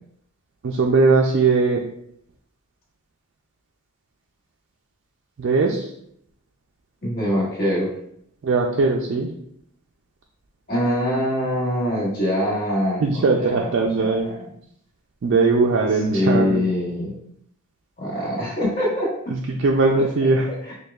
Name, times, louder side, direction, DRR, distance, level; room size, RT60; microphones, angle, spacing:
voice 1, 0.6-1.8 5.4-5.9 8.4-9.3 13.0-14.3 15.2-16.6 19.3-20.5, right 3 dB, 55° right, 0 dB, 0.3 m, -19 dB
voice 2, 7.0-7.9 10.7-13.7 13.9-14.5 15.9-17.1 18.0-19.3 20.6-20.7, equal, 45° left, -6 dB, 1.5 m, -24 dB
6.2 x 2.3 x 2.3 m, 0.71 s
head